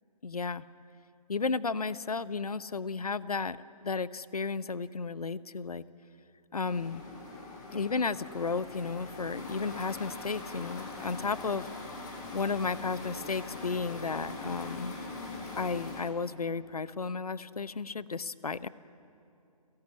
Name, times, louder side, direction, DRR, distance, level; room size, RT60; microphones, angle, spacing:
voice 1, 0.2-0.6 1.3-3.6 3.8-5.8 6.5-7.0 7.7-11.7 12.3-14.9 15.5-18.7, left 4 dB, 70° left, 17 dB, 0.9 m, -33 dB
sound 1, 6.6-16.0, left 2 dB, 30° left, 5.8 m, -42 dB
29.0 x 17.5 x 8.9 m, 2.8 s
figure-of-eight pair, 140°, 20 cm